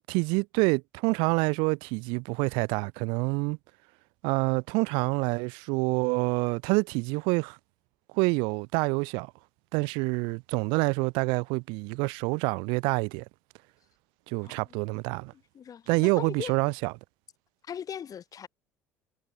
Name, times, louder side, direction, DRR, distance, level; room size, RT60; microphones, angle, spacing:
voice 1, 0.1-3.6 4.2-7.6 8.1-9.3 9.7-13.2 14.3-15.3 15.9-16.9, right 30 dB, 65° right, 0.7 m, -27 dB
voice 2, 15.1-16.5 17.6-18.5, left 8 dB, 40° left, 4.2 m, -40 dB
figure-of-eight pair, 60°, 9 cm